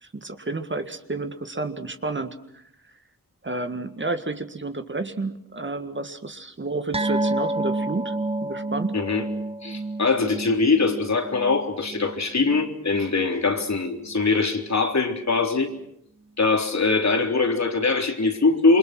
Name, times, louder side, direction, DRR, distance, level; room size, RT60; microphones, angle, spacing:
voice 1, 0.0-2.4 3.4-8.9, right 3 dB, 30° right, 8 dB, 1.8 m, -30 dB
sound 1, 6.9-13.7 14.0-14.2 14.6-14.7, right 2 dB, 15° right, 1.0 m, -30 dB
voice 2, 8.9-9.3 9.6-15.7 16.4-18.8, left 4 dB, 50° left, 4 dB, 3.5 m, -22 dB
28.5 x 24.0 x 6.1 m, 0.76 s
wide cardioid pair, 95°, 36 cm